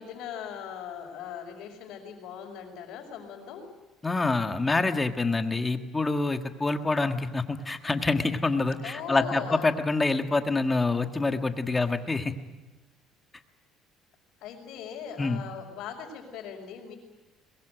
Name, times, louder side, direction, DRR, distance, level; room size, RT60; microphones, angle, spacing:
voice 1, 0.0-3.7 8.8-9.8 14.4-16.9, left 8 dB, 70° left, -5 dB, 5.1 m, -39 dB
voice 2, 4.0-12.3 15.2-15.4, left 3 dB, 15° left, 7 dB, 1.5 m, -26 dB
22.5 x 22.0 x 9.0 m, 1.1 s
cardioid pair, 140°, 0 cm